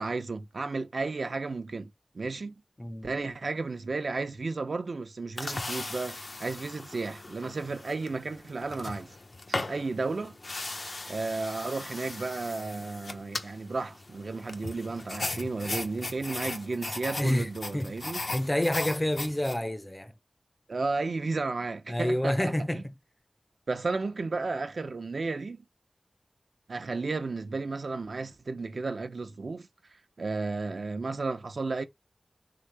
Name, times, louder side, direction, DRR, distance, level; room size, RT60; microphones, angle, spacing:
voice 1, 0.0-2.6 3.0-9.1 9.5-10.4 11.1-18.2 20.7-22.9 23.7-25.6 26.7-29.7 30.2-31.8, right 3 dB, 80° right, 0.7 m, -33 dB
sound 1, 5.4-19.6, left 2 dB, 60° left, 1.0 m, -38 dB
voice 2, 17.2-17.9 18.3-20.1 21.9-22.9, left 1 dB, 20° left, 0.6 m, -28 dB
3.8 x 3.8 x 3.4 m
wide cardioid pair, 70°, 0 cm